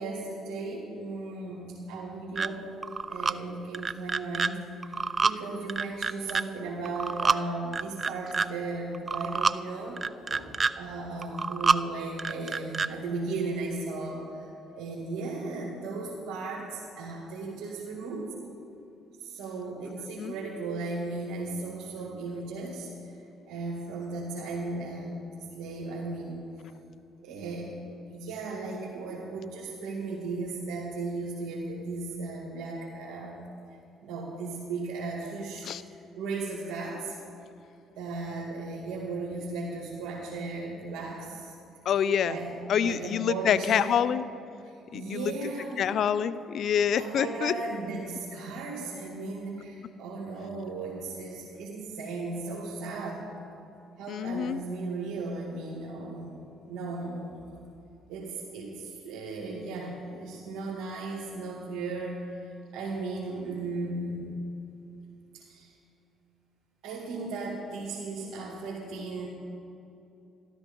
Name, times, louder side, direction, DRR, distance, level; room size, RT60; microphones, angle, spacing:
voice 1, 0.0-2.6 3.1-14.5 14.8-18.3 19.2-23.1 23.5-26.4 27.2-27.7 28.1-33.4 34.0-35.7 36.2-37.2 38.0-41.5 42.2-44.0 44.6-46.0 47.0-53.3 54.0-56.4 56.6-57.6 58.1-62.2 62.7-64.3 65.3-65.7 66.8-69.3, right 3 dB, 75° right, -5 dB, 2.1 m, -36 dB
sound 1, 2.4-2.5 2.8-3.3 3.7-4.5 4.8-5.4 5.7-6.4 6.9-7.4 7.7-8.5 8.9-9.6 10.0-10.7 11.2-11.8 12.2-12.9, right 4 dB, 35° right, 0.4 m, -27 dB
voice 2, 20.0-20.3 35.6-35.8 41.9-42.4 42.7-44.2 44.9-45.3 45.8-47.5 54.1-54.6, left 8 dB, 60° left, 15 dB, 0.4 m, -26 dB
13.0 x 13.0 x 5.3 m, 2.8 s
supercardioid pair, 60°, 0 cm